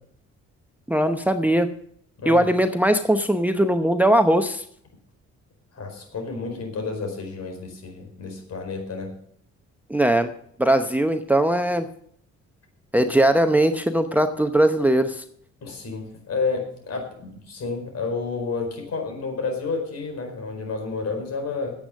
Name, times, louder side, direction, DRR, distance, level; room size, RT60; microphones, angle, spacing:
voice 1, 0.9-1.7 2.3-4.6 9.9-10.3 10.6-11.9 12.9-15.2, right 1 dB, 5° right, 8 dB, 0.8 m, -20 dB
voice 2, 5.7-9.1 15.6-21.7, left 4 dB, 55° left, 2 dB, 4.7 m, -30 dB
10.0 x 8.3 x 7.4 m, 0.64 s
cardioid pair, 90°, 30 cm